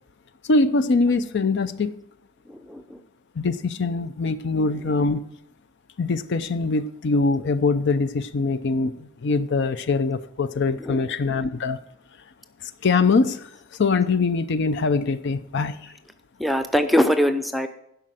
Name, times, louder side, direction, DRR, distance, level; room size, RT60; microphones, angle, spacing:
voice 1, 0.4-1.9 3.4-5.2 6.0-11.8 12.8-13.5 13.8-15.8, left 3 dB, 55° left, 12 dB, 0.5 m, -23 dB
voice 2, 2.5-3.0 10.8-11.1 16.4-17.7, equal, ahead, 9 dB, 0.6 m, -22 dB
11.5 x 5.5 x 7.5 m, 0.77 s
head